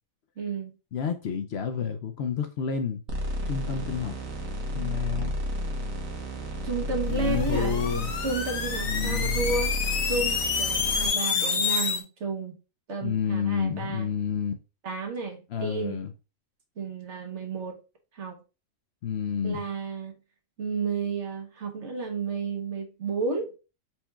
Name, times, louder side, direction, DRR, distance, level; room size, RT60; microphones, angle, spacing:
voice 1, 0.4-0.7 6.6-7.8 8.2-9.7 10.1-12.6 12.9-14.1 14.8-16.0 16.8-17.8 18.1-18.4 19.4-20.1 20.6-23.5, right 4 dB, 60° right, 1.3 m, -32 dB
voice 2, 0.9-3.0 3.5-4.2 4.7-5.4 7.1-8.1 8.8-9.4 10.8-11.0 13.0-14.5 15.5-16.1 19.0-19.6, left 7 dB, 65° left, 0.7 m, -30 dB
sound 1, 3.1-11.1, equal, 85° right, 1.5 m, -32 dB
sound 2, 7.2-12.0, left 6 dB, 85° left, 1.3 m, -28 dB
4.4 x 4.3 x 2.3 m
omnidirectional pair, 1.4 m